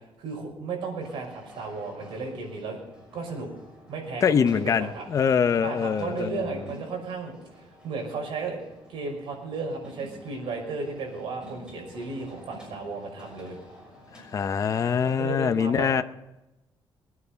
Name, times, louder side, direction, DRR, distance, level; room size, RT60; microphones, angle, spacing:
voice 1, 0.2-2.8 3.1-3.5 3.9-5.0 5.6-7.3 7.8-8.6 8.9-13.6 15.0-15.9, right 4 dB, 75° right, 1 dB, 5.7 m, -34 dB
sound 1, 1.0-15.2, left 1 dB, 10° right, 6.1 m, -50 dB
voice 2, 4.2-6.3 14.3-16.0, left 7 dB, 40° left, 10 dB, 0.7 m, -24 dB
21.5 x 9.6 x 5.7 m, 0.96 s
cardioid pair, 155°, 9 cm